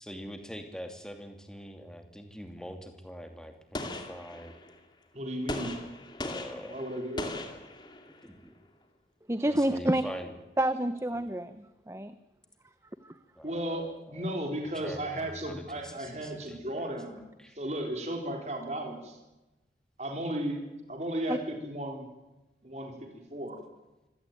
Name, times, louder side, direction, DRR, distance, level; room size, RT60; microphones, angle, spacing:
voice 1, 0.0-4.6 6.2-6.8 8.2-8.6 9.5-10.3 11.1-11.2 13.3-14.4 14.7-16.9 17.4-17.6, equal, 5° left, 6 dB, 2.6 m, -44 dB
Gunshot gunfire, 3.7-4.8 5.5-8.3, left 2 dB, 25° left, 2.4 m, -39 dB
voice 2, 5.1-5.8 6.7-7.3 13.4-17.2 17.5-19.2 20.0-20.6 20.9-22.1 22.6-23.6, right 1 dB, 40° right, 2 dB, 3.9 m, -35 dB
voice 3, 9.3-10.0 10.6-12.2 13.0-13.2 21.3-21.4, right 1 dB, 15° right, 12 dB, 0.8 m, -29 dB
25.5 x 17.0 x 9.2 m, 1.0 s
head